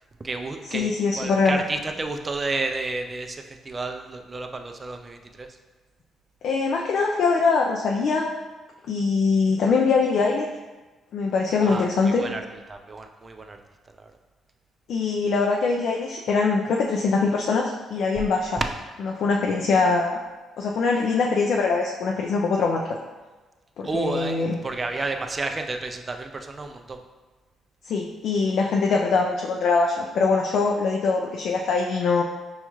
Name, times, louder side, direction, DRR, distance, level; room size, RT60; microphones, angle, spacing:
voice 1, 0.2-5.5 11.6-12.4 12.7-13.6 14.0-14.1 18.6-18.7 23.8-27.0, right 3 dB, 30° right, 5 dB, 0.4 m, -31 dB
voice 2, 0.7-1.6 6.4-8.3 8.9-10.5 11.1-12.2 14.9-18.6 19.1-20.2 20.6-23.0 23.8-24.6 27.8-32.2, left 4 dB, 70° left, 0 dB, 0.4 m, -22 dB
5.4 x 2.3 x 3.0 m, 1.2 s
cardioid pair, 90°, 0 cm